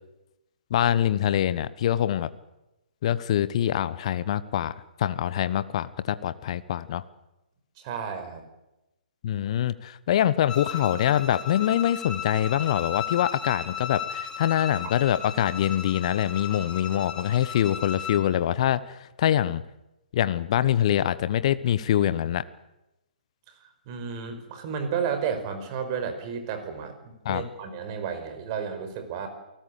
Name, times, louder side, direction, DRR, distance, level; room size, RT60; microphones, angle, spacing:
voice 1, 0.7-2.3 3.0-4.7 5.0-7.0 9.2-19.6 20.1-22.4 27.2-27.4, left 11 dB, 40° left, 15 dB, 1.2 m, -24 dB
voice 2, 7.8-8.5 23.5-29.3, right 7 dB, 30° right, 8 dB, 5.2 m, -32 dB
Bowed string instrument, 10.5-18.2, left 8 dB, 10° left, 5.5 m, -35 dB
28.5 x 19.0 x 8.4 m, 0.97 s
figure-of-eight pair, 130°, 5 cm